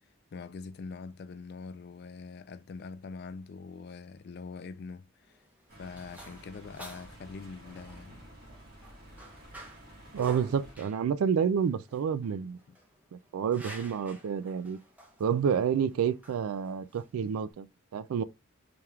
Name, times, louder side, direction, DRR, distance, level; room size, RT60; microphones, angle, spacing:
voice 1, 0.3-5.4 5.8-8.2 12.7-12.8, left 4 dB, 50° left, 0.3 m, -43 dB
sound 1, 5.2-17.5, equal, 5° right, 0.8 m, -51 dB
sound 2, 5.7-10.7, right 1 dB, 45° right, 1.4 m, -51 dB
voice 2, 10.1-12.6 13.1-14.8 15.2-17.7 17.9-18.2, right 7 dB, 80° right, 0.3 m, -29 dB
4.4 x 3.4 x 2.3 m
head